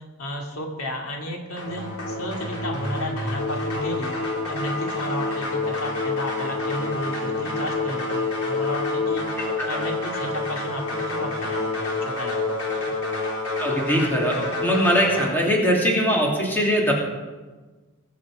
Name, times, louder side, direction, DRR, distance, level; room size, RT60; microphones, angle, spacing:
voice 1, 0.2-12.9, left 1 dB, 75° left, 0 dB, 2.4 m, -33 dB
sound 1, 1.6-15.3, left 2 dB, 90° left, 3.8 m, -28 dB
voice 2, 13.6-16.9, equal, 10° left, -2 dB, 2.7 m, -21 dB
21.0 x 8.6 x 4.9 m, 1.3 s
head